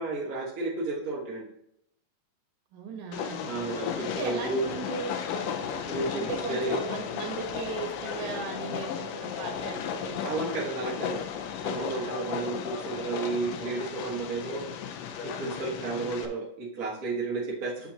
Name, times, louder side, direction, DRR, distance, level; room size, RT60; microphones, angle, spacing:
voice 1, 0.0-1.5 3.4-4.6 5.9-6.2 6.5-6.8 10.2-11.2 11.6-14.7 15.2-17.9, right 3 dB, 45° right, -5 dB, 1.1 m, -32 dB
voice 2, 2.7-3.5 4.0-5.2 6.1-10.5 11.9-12.2, right 5 dB, 70° right, 2 dB, 2.4 m, -37 dB
Train, 3.1-16.3, left 7 dB, 80° left, 2.3 m, -35 dB
7.8 x 7.2 x 2.9 m, 0.75 s
omnidirectional pair, 4.0 m